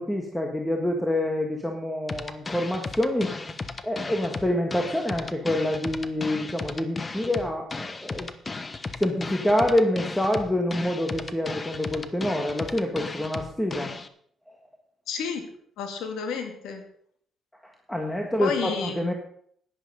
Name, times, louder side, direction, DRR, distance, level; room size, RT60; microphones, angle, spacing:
voice 1, 0.0-3.3 3.8-8.3 9.0-13.9 14.5-14.6 17.6-19.1, left 1 dB, 5° left, 2 dB, 1.6 m, -27 dB
sound 1, 2.1-14.1, left 3 dB, 30° left, 0.9 m, -35 dB
voice 2, 15.1-15.5 15.8-16.8 18.4-19.1, left 6 dB, 85° left, 5 dB, 2.2 m, -31 dB
11.0 x 10.5 x 5.3 m, 0.64 s
cardioid pair, 90°, 0 cm